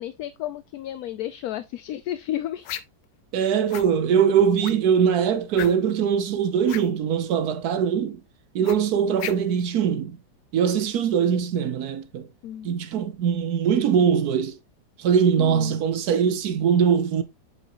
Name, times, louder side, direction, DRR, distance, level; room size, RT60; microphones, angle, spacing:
voice 1, 0.0-2.7 3.4-3.5 12.4-12.7 15.4-15.8, left 12 dB, 70° left, 1.0 m, -32 dB
sound 1, 2.6-3.1 3.7-3.9 4.6-4.9 5.5-6.0 6.6-6.9 8.6-9.6, left 12 dB, 90° left, 1.3 m, -34 dB
voice 2, 3.3-8.2 8.5-10.2 10.5-12.3 12.6-14.6 15.0-17.2, right 7 dB, 70° right, 1.1 m, -22 dB
7.8 x 4.8 x 2.9 m
omnidirectional pair, 1.8 m